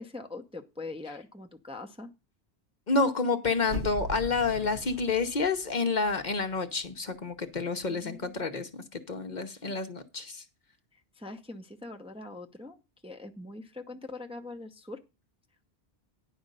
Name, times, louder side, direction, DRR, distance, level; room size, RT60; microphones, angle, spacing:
voice 1, 0.0-2.1 7.8-8.4 11.2-15.0, left 2 dB, 5° right, 3 dB, 0.7 m, -42 dB
voice 2, 2.9-10.4, left 4 dB, 45° left, 7 dB, 0.9 m, -29 dB
sound 1, 3.6-6.6 6.9-7.0, left 1 dB, 50° right, 1.4 m, -40 dB
10.0 x 5.1 x 6.6 m, 0.27 s
omnidirectional pair, 1.1 m